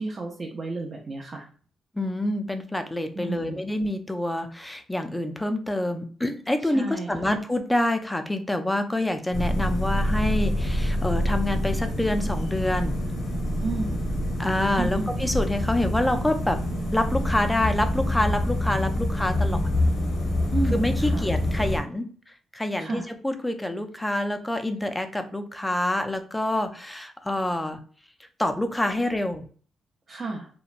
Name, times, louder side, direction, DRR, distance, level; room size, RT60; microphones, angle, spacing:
voice 1, 0.0-1.5 3.1-3.6 6.6-7.3 13.6-14.0 14.8-15.0 20.5-21.3 22.8-23.1 30.1-30.5, right 3 dB, 40° right, -1 dB, 0.5 m, -32 dB
voice 2, 1.9-13.0 14.4-16.6 16.9-19.6 20.7-22.1 22.5-27.8 28.4-29.4, left 1 dB, 10° left, 7 dB, 0.4 m, -27 dB
sound 1, 9.3-21.8, left 1 dB, 80° left, 0.8 m, -26 dB
2.9 x 2.1 x 2.4 m, 0.43 s
cardioid pair, 90°, 0 cm